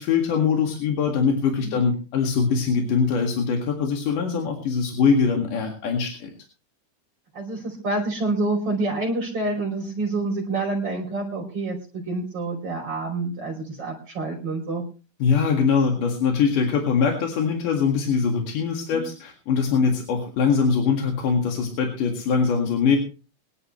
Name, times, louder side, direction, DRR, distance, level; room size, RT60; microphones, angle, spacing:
voice 1, 0.0-6.3 15.2-23.0, left 5 dB, 90° left, 2 dB, 3.6 m, -22 dB
voice 2, 7.3-14.8 18.9-19.1, right 2 dB, 45° right, -1 dB, 3.8 m, -27 dB
23.0 x 11.0 x 3.1 m, 0.33 s
omnidirectional pair, 3.6 m